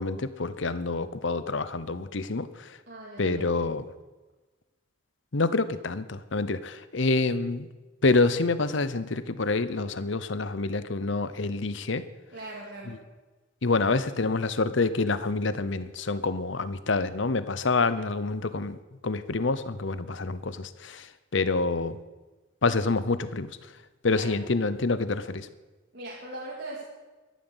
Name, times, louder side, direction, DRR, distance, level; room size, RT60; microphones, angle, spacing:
voice 1, 0.0-2.8 3.2-3.8 5.3-7.7 8.0-12.0 12.9-13.0 13.6-18.8 19.0-22.0 22.6-23.5 24.0-25.5, left 3 dB, 65° left, 14 dB, 0.8 m, -27 dB
voice 2, 2.9-3.5 12.3-13.0 24.1-24.4 25.9-26.8, right 2 dB, 55° right, -4 dB, 2.6 m, -40 dB
13.0 x 12.0 x 8.0 m, 1.2 s
head